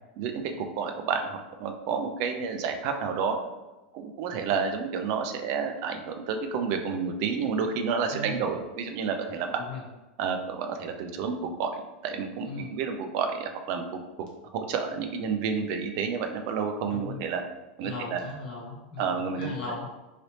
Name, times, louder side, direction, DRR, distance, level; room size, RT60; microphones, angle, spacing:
voice 1, 0.2-3.4 3.9-9.6 10.2-13.9 14.5-17.4 17.8-18.2 19.0-19.5, right 6 dB, 50° right, 6 dB, 0.4 m, -30 dB
voice 2, 8.1-8.5 9.5-9.8 12.4-12.7 16.9-17.2 17.8-19.9, left 3 dB, 85° left, -3 dB, 1.2 m, -38 dB
3.2 x 2.8 x 2.8 m, 1.1 s
supercardioid pair, 140°, 5 cm